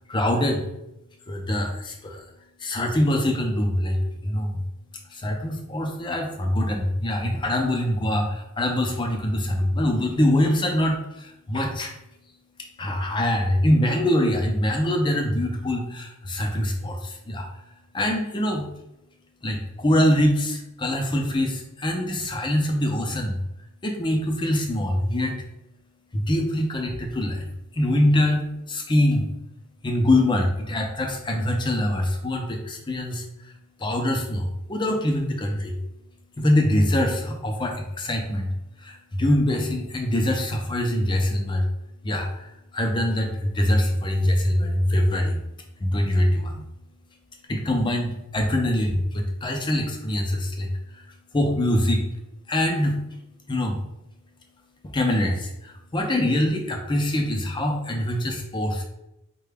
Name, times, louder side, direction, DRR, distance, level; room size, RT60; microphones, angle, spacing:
voice 1, 0.1-0.7 1.3-2.3 2.6-4.6 5.1-12.0 12.8-17.6 17.9-18.7 19.4-23.4 23.8-25.3 26.1-27.5 27.7-29.3 29.8-33.5 33.8-35.8 36.4-38.5 38.8-41.7 42.0-45.4 45.8-46.7 47.5-51.0 51.3-52.1 52.5-53.0 53.5-53.8 54.8-58.8, left 1 dB, 25° left, 3 dB, 0.5 m, -24 dB
4.8 x 2.2 x 3.4 m, 0.87 s
head